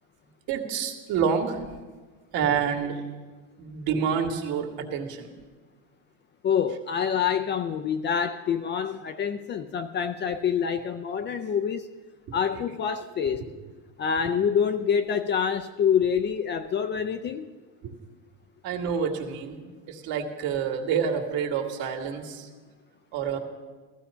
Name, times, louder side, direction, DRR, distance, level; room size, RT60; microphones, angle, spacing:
voice 1, 0.5-1.6 2.3-3.0 3.6-5.3 17.8-17.9 18.6-19.6 19.9-22.5 23.1-23.4, right 7 dB, 60° right, 2.2 m, -28 dB
voice 2, 6.4-11.9 12.3-13.5 14.0-17.5, left 7 dB, 25° left, 0.4 m, -26 dB
15.5 x 14.5 x 5.6 m
cardioid pair, 145°, 41 cm